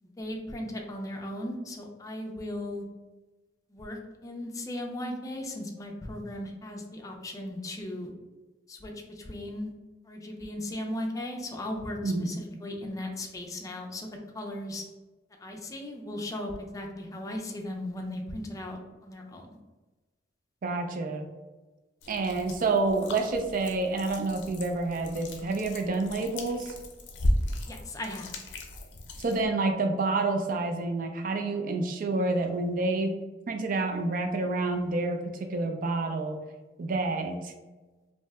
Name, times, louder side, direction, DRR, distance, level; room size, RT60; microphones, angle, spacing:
voice 1, 0.0-2.8 3.7-8.1 8.7-9.7 10.0-14.8 15.4-19.5 27.7-28.3, left 1 dB, 20° left, 1 dB, 0.4 m, -37 dB
voice 2, 12.0-12.3 20.6-21.3 22.1-26.7 29.2-33.2 33.5-36.4 36.8-37.5, right 3 dB, 50° right, 6 dB, 0.4 m, -28 dB
sound 1, 22.0-29.5, left 1 dB, 85° left, 0.5 m, -35 dB
2.7 x 2.1 x 3.3 m, 1.2 s
head